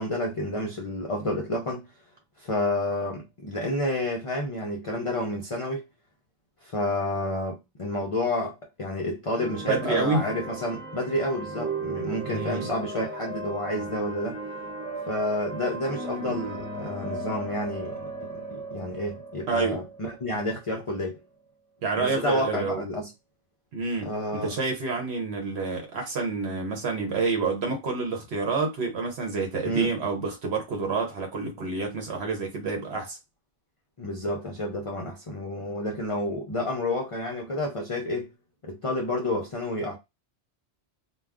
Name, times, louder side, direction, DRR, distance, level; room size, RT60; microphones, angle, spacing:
voice 1, 0.0-1.9 2.4-5.8 6.6-14.4 15.1-21.2 22.0-23.1 24.0-24.5 29.6-29.9 34.0-38.3 38.6-40.0, left 1 dB, 45° left, 0.4 m, -30 dB
sound 1, 9.3-21.0, right 2 dB, 5° left, 1.2 m, -36 dB
voice 2, 9.7-10.3 12.3-12.7 19.5-19.8 21.8-22.8 23.7-33.2, right 4 dB, 70° right, 1.0 m, -28 dB
2.3 x 2.2 x 3.5 m
omnidirectional pair, 1.1 m